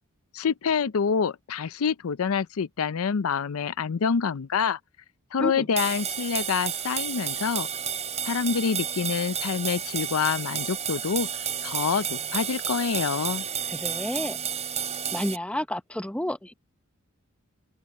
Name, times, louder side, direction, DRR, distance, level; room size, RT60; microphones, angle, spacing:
voice 1, 0.3-4.8 5.3-7.7 8.3-11.3 11.6-13.4, left 6 dB, 75° left, 0.5 m, -26 dB
sound 1, 5.8-15.4, right 8 dB, 30° right, 4.0 m, -31 dB
voice 2, 13.7-14.4 15.1-16.5, left 1 dB, 5° left, 1.0 m, -30 dB
open air
head